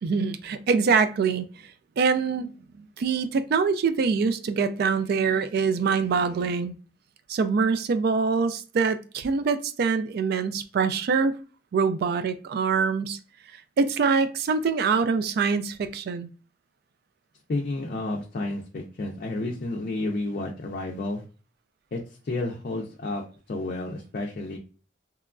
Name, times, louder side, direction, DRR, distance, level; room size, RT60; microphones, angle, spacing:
voice 1, 0.0-1.5 2.0-6.7 7.3-11.3 11.7-13.2 13.8-16.3, right 5 dB, 60° right, 0.3 m, -24 dB
voice 2, 17.5-21.2 21.9-22.0 22.2-24.6, left 2 dB, 50° left, 0.4 m, -31 dB
2.9 x 2.3 x 2.3 m
head